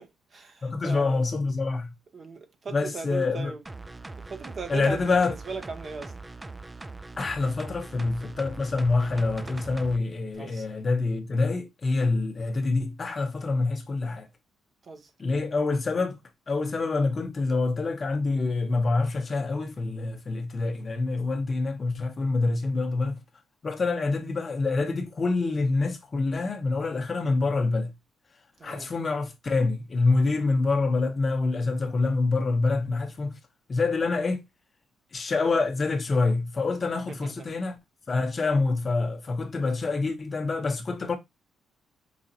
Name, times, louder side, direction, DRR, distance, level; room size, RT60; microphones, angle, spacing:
voice 1, 0.0-1.2 2.1-3.6 4.2-6.1 10.3-10.7 14.8-15.1 23.9-24.2 28.6-28.9 37.1-37.5, right 4 dB, 45° right, 0.7 m, -38 dB
voice 2, 0.6-1.9 2.7-3.5 4.7-5.3 7.2-14.3 15.2-16.2 16.5-23.2 23.6-27.9 28.6-33.3 33.7-34.4 35.1-37.8 38.1-41.2, left 3 dB, 35° left, 0.8 m, -26 dB
sound 1, 3.7-10.0 10.3-10.4, right 3 dB, 20° right, 0.3 m, -41 dB
4.9 x 2.5 x 2.7 m
cardioid pair, 90°, 0 cm